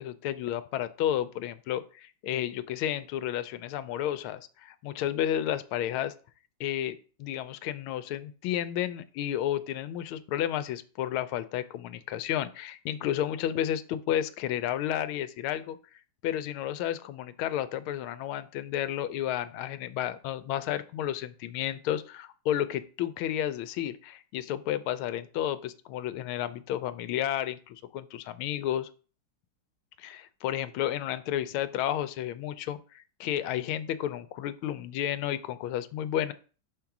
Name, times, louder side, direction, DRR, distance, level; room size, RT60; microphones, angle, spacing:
voice 1, 0.0-6.1 6.6-15.8 16.2-28.9 30.0-36.3, left 11 dB, 85° left, 13 dB, 1.4 m, -32 dB
5.4 x 3.7 x 5.8 m, 0.38 s
omnidirectional pair, 2.3 m